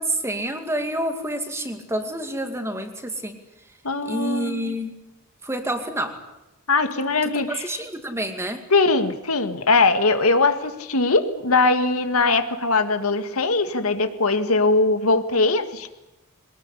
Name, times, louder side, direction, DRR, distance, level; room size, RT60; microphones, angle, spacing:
voice 1, 0.0-3.4 4.0-5.0 5.4-6.2 7.3-8.6, right 1 dB, 10° right, 6 dB, 2.3 m, -28 dB
voice 2, 3.8-4.7 6.7-7.7 8.7-15.9, left 3 dB, 85° left, 8 dB, 2.0 m, -21 dB
23.0 x 19.5 x 9.9 m, 0.96 s
head